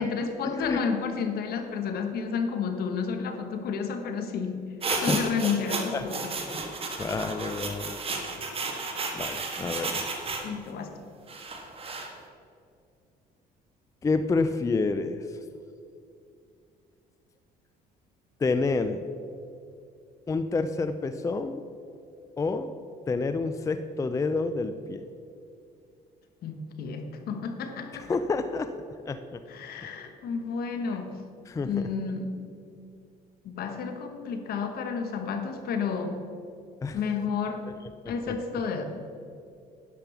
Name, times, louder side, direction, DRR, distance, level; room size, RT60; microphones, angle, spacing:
voice 1, 0.0-4.7 5.0-6.3 9.6-9.7 10.4-11.0 26.4-28.1 29.5-31.2 31.6-32.5 33.4-36.2 36.9-37.7 38.1-38.8, left 5 dB, 65° left, 7 dB, 1.2 m, -31 dB
voice 2, 0.5-0.8 4.9-5.5 5.9-6.1 6.5-6.7 7.0-8.0 9.1-10.0 14.0-15.4 18.4-19.0 20.3-21.6 22.4-22.7 23.1-25.0 28.0-28.7 29.1-29.4 31.5-31.9 36.8-37.1 37.7-37.8 38.3-38.4, left 3 dB, 20° left, 9 dB, 0.4 m, -29 dB
sound 1, 4.8-10.5 11.3-12.1, right 3 dB, 35° right, 1.5 m, -33 dB
10.5 x 5.2 x 6.9 m, 2.5 s
cardioid pair, 110°, 17 cm